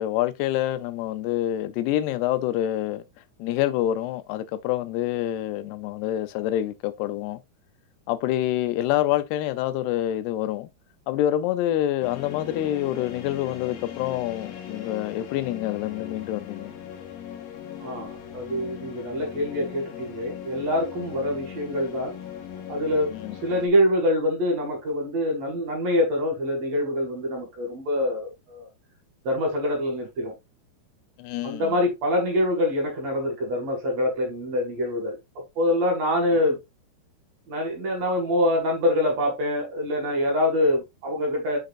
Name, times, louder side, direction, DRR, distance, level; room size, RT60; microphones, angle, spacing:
voice 1, 0.0-3.0 3.4-7.4 8.1-10.7 11.1-16.7 23.1-23.4 31.2-31.8, left 13 dB, 90° left, 2.7 m, -27 dB
sound 1, 12.0-23.7, left 9 dB, 70° left, 3.1 m, -39 dB
voice 2, 17.8-22.1 22.7-23.1 23.4-28.7 29.2-30.3 31.4-35.2 35.6-36.6 37.5-41.6, left 1 dB, 50° right, 2.7 m, -25 dB
6.5 x 6.4 x 2.5 m
omnidirectional pair, 4.6 m